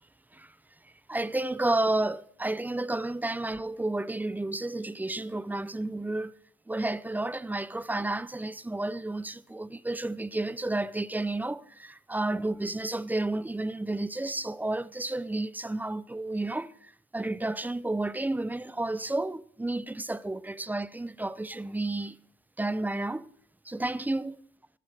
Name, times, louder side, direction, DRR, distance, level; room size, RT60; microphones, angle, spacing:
voice 1, 1.1-6.3 6.7-22.2 22.6-23.3 23.7-24.3, right 2 dB, 10° right, 0.4 m, -31 dB
12.5 x 12.5 x 3.3 m
cardioid pair, 90°, 20 cm